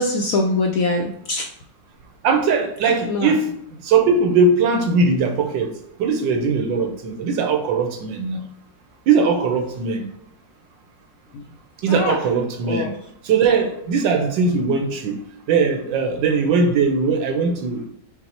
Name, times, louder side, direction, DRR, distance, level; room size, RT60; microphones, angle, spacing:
voice 1, 0.0-1.5 2.9-3.4 11.3-11.4 11.9-12.2 12.7-12.9, left 2 dB, 75° left, 1 dB, 0.8 m, -23 dB
voice 2, 2.2-3.6 3.8-5.7 6.0-8.4 9.1-10.0 11.8-12.9 13.2-15.2 15.5-17.9, right 4 dB, 90° right, 4 dB, 1.4 m, -20 dB
5.9 x 2.0 x 4.3 m, 0.74 s
omnidirectional pair, 1.9 m